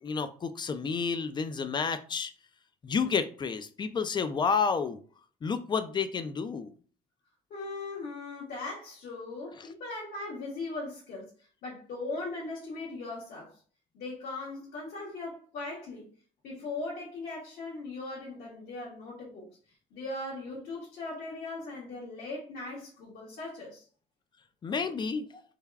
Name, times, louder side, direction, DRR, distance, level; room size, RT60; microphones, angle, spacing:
voice 1, 0.0-2.3 2.8-5.0 5.4-6.7 24.6-25.3, left 5 dB, 25° left, 0.4 m, -30 dB
voice 2, 7.5-11.3 11.6-13.6 13.9-16.1 16.4-19.4 19.9-23.9 25.3-25.4, left 2 dB, 70° left, 1.5 m, -39 dB
3.3 x 2.3 x 3.4 m
cardioid pair, 110°, 17 cm